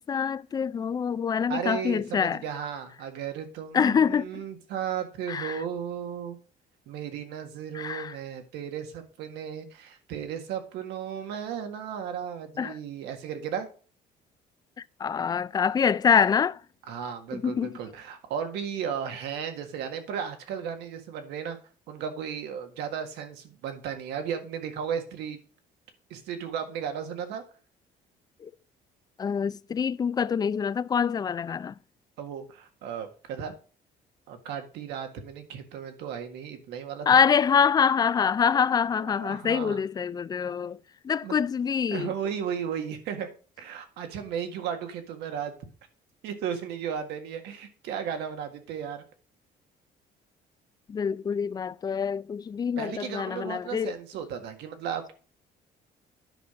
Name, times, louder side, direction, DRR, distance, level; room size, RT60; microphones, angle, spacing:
voice 1, 0.0-2.4 3.7-4.4 5.3-5.6 7.7-8.2 12.6-12.7 15.0-16.6 17.3-17.8 28.4-28.5 29.2-31.7 37.1-40.8 41.0-42.1 50.9-53.9, left 7 dB, 25° left, 0.3 m, -25 dB
voice 2, 1.5-6.4 6.9-13.7 16.9-21.6 21.9-25.4 26.1-27.4 32.2-33.5 34.3-37.2 39.0-39.8 41.2-41.4 41.9-43.3 43.6-45.5 46.2-49.0 52.8-55.1, right 8 dB, 85° right, 1.7 m, -35 dB
10.0 x 5.7 x 5.0 m
cardioid pair, 110°, 17 cm